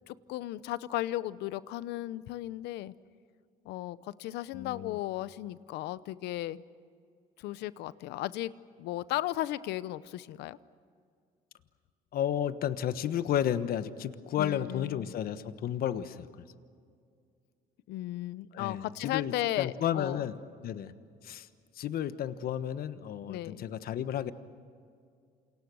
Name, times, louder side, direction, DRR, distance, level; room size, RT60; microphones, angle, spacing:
voice 1, 0.1-2.9 3.6-6.6 7.4-8.5 8.8-10.6 14.4-15.1 17.9-20.3 23.3-23.7, left 15 dB, 85° left, 16 dB, 0.8 m, -35 dB
voice 2, 4.5-5.0 12.1-16.3 18.5-20.4 20.6-20.9 21.2-21.5 21.7-24.3, left 10 dB, 65° left, 12 dB, 1.3 m, -32 dB
29.0 x 27.5 x 6.4 m, 2.2 s
cardioid pair, 110°, 17 cm